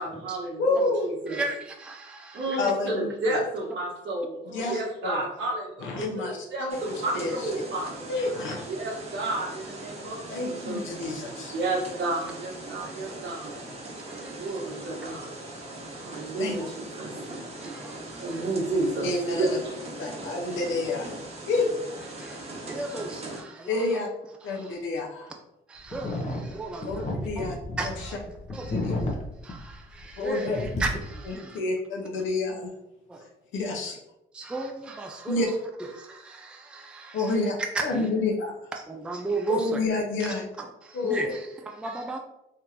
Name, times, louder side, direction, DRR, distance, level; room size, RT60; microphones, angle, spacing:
voice 1, 0.0-1.4 2.3-8.1 8.7-10.8 11.3-13.6 14.3-15.3 16.0-16.6 17.0-17.2 18.2-19.6, right 2 dB, 70° right, 1.4 m, -31 dB
voice 2, 0.6-1.1 2.6-3.4 4.5-5.2 5.8-6.8 7.1-7.3 8.1-8.6 10.3-11.5 16.4-16.5 19.0-19.5 20.0-21.1 21.5-21.6 23.7-24.1 24.4-25.3 26.8-27.5 27.8-28.1 28.8-28.9 30.2-30.6 31.3-32.7 33.5-34.0 35.3-35.5 37.1-37.5 37.8-38.5 39.5-40.4 40.9-41.3, left 3 dB, 75° left, 0.8 m, -28 dB
voice 3, 1.3-2.6 14.1-14.4 17.6-18.4 20.2-20.3 22.1-24.0 24.4-24.8 25.7-27.5 27.8-28.2 28.5-29.0 29.4-31.6 33.1-33.2 34.3-35.5 35.9-37.3 37.7-38.1 38.9-39.8 40.6-42.2, right 3 dB, 5° right, 0.3 m, -35 dB
sound 1, 6.7-23.4, right 2 dB, 30° right, 0.8 m, -40 dB
sound 2, 25.9-30.2 30.5-31.3, left 1 dB, 35° left, 0.7 m, -32 dB
3.5 x 2.5 x 2.9 m
cardioid pair, 90°, 20 cm